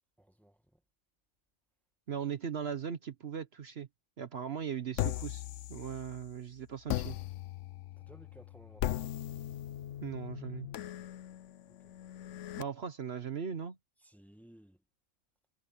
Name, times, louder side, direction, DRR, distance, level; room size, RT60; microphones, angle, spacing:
voice 1, 0.2-0.8 8.0-9.1 11.7-11.9 14.0-14.8, right 1 dB, ahead, 1.5 m, -58 dB
voice 2, 2.1-3.9 4.2-7.2 10.0-10.7 12.6-13.8, right 7 dB, 55° right, 1.1 m, -39 dB
sound 1, 5.0-6.3 6.9-12.6, left 13 dB, 70° left, 0.9 m, -38 dB
omnidirectional pair, 1.3 m